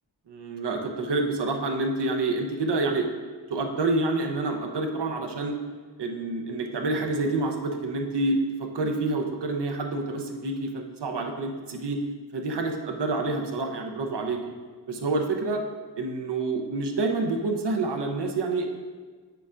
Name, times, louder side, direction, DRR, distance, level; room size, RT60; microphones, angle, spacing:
voice 1, 0.3-3.1 3.5-5.6 6.0-12.0 12.3-14.4 14.9-15.6 16.0-18.7, right 2 dB, 75° right, 3 dB, 0.8 m, -28 dB
8.1 x 6.8 x 2.5 m, 1.4 s
wide cardioid pair, 145°, 42 cm